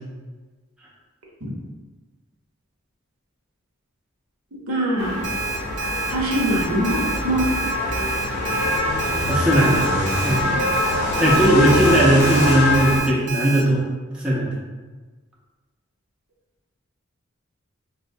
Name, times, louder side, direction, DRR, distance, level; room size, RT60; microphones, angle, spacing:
voice 1, 4.7-5.2 6.1-7.5, right 1 dB, 75° right, -3 dB, 0.9 m, -23 dB
sound 1, 5.0-13.0, left 1 dB, 55° left, 0.5 m, -23 dB
Alarm, 5.2-13.6, right 4 dB, 55° right, 0.5 m, -29 dB
voice 2, 9.3-9.8 10.1-10.6 11.2-13.8 14.1-14.6, right 1 dB, 5° right, -7 dB, 0.5 m, -18 dB
4.2 x 2.1 x 2.6 m, 1.3 s
head